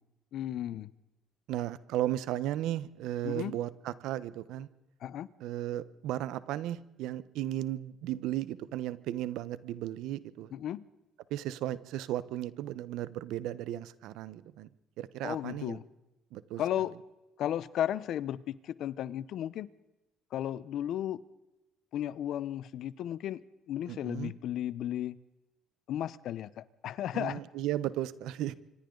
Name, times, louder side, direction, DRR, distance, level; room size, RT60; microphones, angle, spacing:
voice 1, 0.3-0.9 3.2-3.5 5.0-5.3 10.5-10.9 15.2-15.8 16.6-16.9 17.4-19.7 20.3-21.2 21.9-23.4 23.7-25.2 25.9-27.4, left 11 dB, 65° left, 0.8 m, -34 dB
voice 2, 1.5-4.7 5.4-10.5 11.3-14.7 15.0-15.8 16.3-16.6 23.9-24.3 27.1-28.5, right 13 dB, 80° right, 1.0 m, -35 dB
26.0 x 25.5 x 4.0 m
cardioid pair, 100°, 0 cm